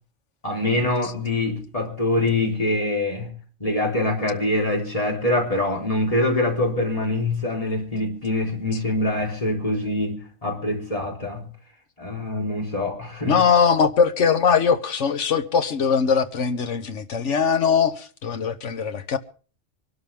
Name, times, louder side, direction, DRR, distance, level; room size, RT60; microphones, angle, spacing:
voice 1, 0.4-3.3 3.6-11.5 12.0-13.4, left 1 dB, 30° left, 3.8 m, -24 dB
voice 2, 13.3-19.2, left 6 dB, 75° left, 1.5 m, -21 dB
24.0 x 12.5 x 3.5 m
omnidirectional pair, 1.2 m